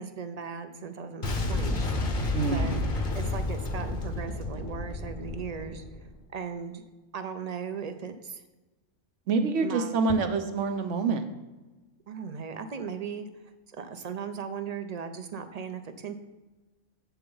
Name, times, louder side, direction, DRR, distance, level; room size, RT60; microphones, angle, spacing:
voice 1, 0.0-1.9 2.4-2.8 3.1-5.8 6.3-6.8 7.1-8.4 9.6-10.0 12.1-13.3 13.7-16.2, right 6 dB, 50° right, 8 dB, 0.5 m, -37 dB
Boom, 1.2-6.1, left 2 dB, 45° left, 1.0 m, -31 dB
voice 2, 2.3-2.9 9.3-11.2, right 4 dB, 75° right, 7 dB, 1.1 m, -27 dB
7.8 x 6.8 x 3.9 m, 1.2 s
omnidirectional pair, 1.3 m